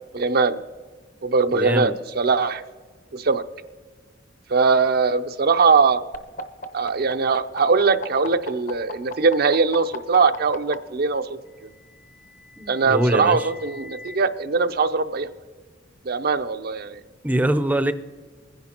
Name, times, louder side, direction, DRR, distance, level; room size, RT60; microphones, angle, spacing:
voice 1, 0.1-0.6 1.2-2.6 3.1-3.4 4.5-6.0 6.7-11.2 12.7-15.3 16.1-17.0, right 4 dB, 55° right, 10 dB, 0.6 m, -21 dB
voice 2, 1.5-2.0 12.6-13.5 17.2-17.9, right 1 dB, 10° right, 10 dB, 0.5 m, -23 dB
sound 1, 6.1-10.7 11.9-14.2, left 3 dB, 45° left, 0.9 m, -37 dB
21.5 x 10.5 x 2.9 m, 1.4 s
head